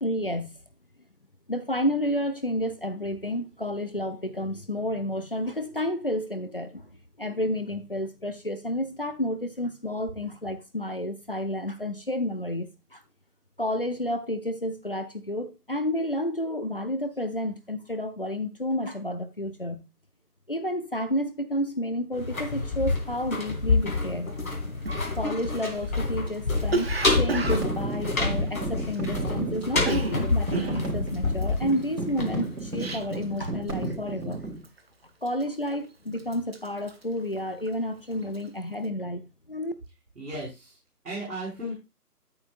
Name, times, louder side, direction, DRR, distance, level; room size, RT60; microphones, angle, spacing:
voice 1, 0.0-0.5 1.5-6.9 7.2-13.0 13.6-19.8 20.5-24.8 25.1-34.4 35.2-39.7, left 1 dB, 35° left, 0.6 m, -30 dB
sound 1, 22.1-32.9 33.2-33.3, left 3 dB, 60° left, 2.8 m, -28 dB
Cough, 24.4-24.5 24.8-29.3 29.6-33.4 33.7-34.0 34.3-34.8 35.3-35.8 36.1-37.8 38.1-38.5, right 3 dB, 40° right, 0.9 m, -33 dB
sound 2, 27.3-34.6, right 2 dB, 75° right, 3.4 m, -33 dB
voice 2, 40.2-40.7 41.0-41.8, right 1 dB, 55° right, 5.6 m, -35 dB
10.0 x 8.7 x 2.5 m
figure-of-eight pair, 155°, 48 cm